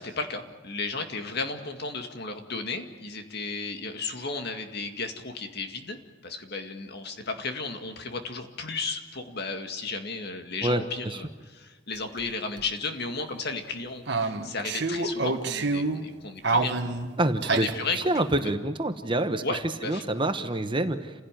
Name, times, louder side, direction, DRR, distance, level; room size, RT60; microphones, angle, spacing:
voice 1, 0.0-6.0 6.2-16.7 17.5-18.5 19.4-20.0, left 3 dB, 55° left, 6 dB, 2.1 m, -34 dB
voice 2, 10.6-11.2 17.2-17.7 18.0-21.1, right 1 dB, 25° right, 8 dB, 1.1 m, -27 dB
sound 1, 12.2-12.3 12.6-12.7 14.1-16.1 16.4-17.8, right 3 dB, 60° right, 1.6 m, -27 dB
28.5 x 16.5 x 9.2 m, 1.3 s
head